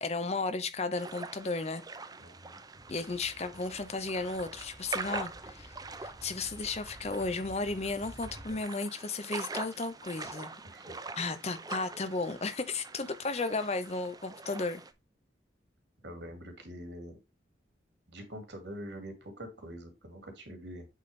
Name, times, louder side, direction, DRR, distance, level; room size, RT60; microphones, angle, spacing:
voice 1, 0.0-1.8 2.9-5.7 6.0-10.5 11.2-14.8, left 3 dB, 35° left, 0.7 m, -34 dB
sound 1, 0.9-14.9, right 3 dB, 20° right, 0.6 m, -44 dB
voice 2, 2.2-2.6 10.7-10.9 16.0-17.2 18.1-20.9, equal, 80° right, 2.6 m, -45 dB
sound 2, 2.7-8.6, equal, 65° left, 2.5 m, -52 dB
8.3 x 4.3 x 3.2 m
head